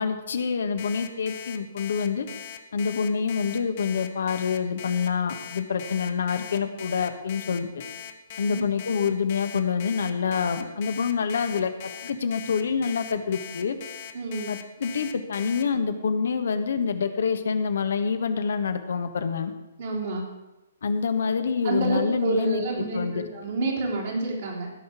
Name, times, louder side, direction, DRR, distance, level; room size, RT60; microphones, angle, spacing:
voice 1, 0.0-2.3 2.7-7.8 8.4-13.8 14.5-19.5 20.8-23.3, left 6 dB, 65° left, 8 dB, 1.4 m, -27 dB
Alarm, 0.8-15.6, left 10 dB, 45° left, 1.1 m, -40 dB
voice 2, 14.1-14.5 19.8-20.3 21.6-24.7, right 2 dB, 60° right, -3 dB, 3.5 m, -28 dB
16.0 x 5.7 x 8.2 m, 1.0 s
figure-of-eight pair, 125°, 0 cm